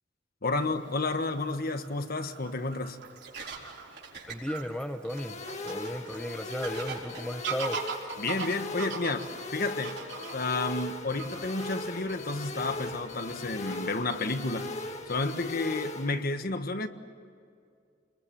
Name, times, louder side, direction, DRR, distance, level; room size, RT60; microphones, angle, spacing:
voice 1, 0.4-3.0 8.2-10.0 10.3-14.7 15.1-16.9, left 3 dB, 55° left, 1.5 m, -31 dB
Fowl / Bird vocalization bird call bird song, 0.6-16.3, right 5 dB, 90° right, 3.2 m, -44 dB
sound 1, 3.0-10.9, right 5 dB, 65° right, 4.4 m, -47 dB
voice 2, 4.3-5.4 5.6-7.8, equal, 5° left, 0.8 m, -35 dB
sound 2, 5.1-16.1, left 2 dB, 40° left, 1.9 m, -39 dB
29.0 x 21.5 x 9.0 m
head